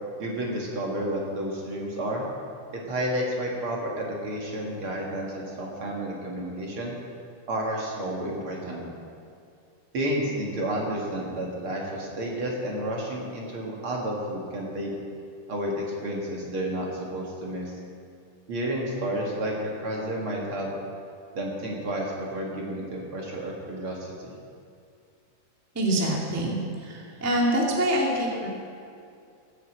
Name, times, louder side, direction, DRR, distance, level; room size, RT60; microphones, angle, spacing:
voice 1, 0.2-2.2 2.7-6.9 7.5-8.9 9.9-14.9 15.5-15.7 16.0-16.9 17.1-17.7 18.5-20.7 21.3-24.3, right 1 dB, 50° right, -2 dB, 2.5 m, -31 dB
voice 2, 25.8-28.5, right 1 dB, 5° right, -3 dB, 1.6 m, -25 dB
16.0 x 8.1 x 7.9 m, 2.4 s
omnidirectional pair, 3.5 m